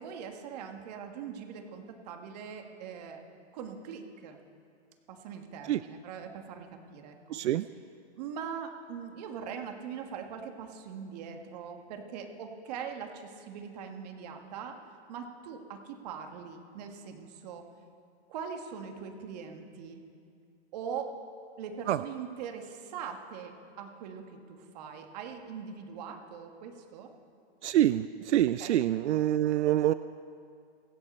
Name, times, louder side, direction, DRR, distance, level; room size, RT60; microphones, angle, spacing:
voice 1, 0.0-3.2 3.5-4.4 5.1-7.4 8.2-14.8 15.1-17.6 18.3-20.0 20.7-21.1 21.6-27.1 28.6-28.8, right 7 dB, 35° right, 5 dB, 1.5 m, -41 dB
voice 2, 7.3-7.6 21.9-22.0 27.6-29.9, right 12 dB, 85° right, 13 dB, 0.5 m, -26 dB
23.5 x 7.9 x 4.3 m, 2.3 s
hypercardioid pair, 160°, 34 cm